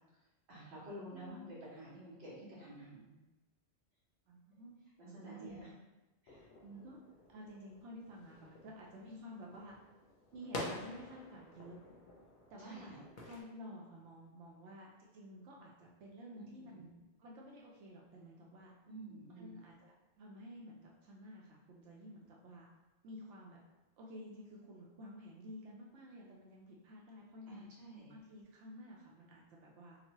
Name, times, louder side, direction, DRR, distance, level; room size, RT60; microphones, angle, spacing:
voice 1, 0.5-3.1 5.0-5.7 6.2-6.5 12.6-13.0 16.4-16.8 18.9-19.5 27.5-28.1, right 1 dB, 70° right, -7 dB, 1.2 m, -50 dB
voice 2, 1.1-1.5 4.3-4.7 5.0-5.6 6.6-7.0 7.3-9.8 10.3-11.8 12.5-13.0 13.2-18.7 19.4-22.7 23.0-23.6 24.0-27.7 28.1-30.0, equal, 90° right, -3 dB, 0.9 m, -52 dB
sound 1, 6.3-13.4, left 2 dB, 55° left, 0.6 m, -49 dB
2.9 x 2.1 x 2.8 m, 1.0 s
omnidirectional pair, 1.2 m